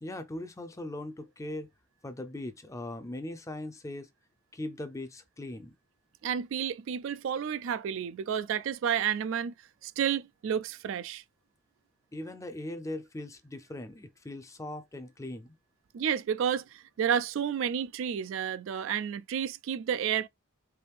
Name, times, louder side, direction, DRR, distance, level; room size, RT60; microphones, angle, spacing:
voice 1, 0.0-1.7 2.0-4.1 4.5-5.7 12.1-15.6, left 1 dB, 15° left, 0.5 m, -39 dB
voice 2, 6.2-9.5 9.8-11.2 15.9-20.3, right 8 dB, 65° right, 0.3 m, -31 dB
4.6 x 2.5 x 3.3 m
head